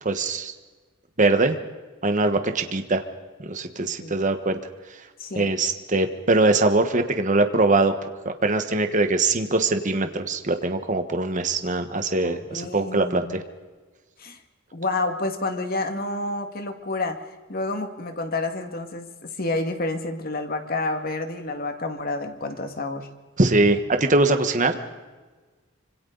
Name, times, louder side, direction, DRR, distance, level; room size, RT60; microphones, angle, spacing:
voice 1, 0.0-0.5 1.2-1.6 2.0-3.0 3.4-4.6 5.4-7.9 8.2-13.4 23.4-24.8, right 2 dB, 40° right, 7 dB, 1.3 m, -22 dB
voice 2, 3.8-4.2 5.2-5.5 12.2-13.4 14.2-14.4 14.7-17.2 17.5-23.1, left 2 dB, 50° left, 6 dB, 2.1 m, -29 dB
25.5 x 25.5 x 4.0 m, 1.3 s
head